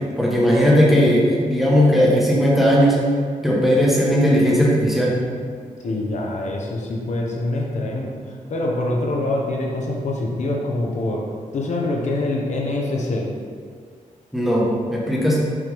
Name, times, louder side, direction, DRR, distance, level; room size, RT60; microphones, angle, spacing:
voice 1, 0.2-3.0 3.4-5.2 14.3-15.4, equal, ahead, -5 dB, 1.2 m, -17 dB
voice 2, 5.8-11.2 11.5-13.2, left 2 dB, 60° left, -2 dB, 1.0 m, -25 dB
6.2 x 5.8 x 3.5 m, 2.1 s
wide cardioid pair, 160°, 14 cm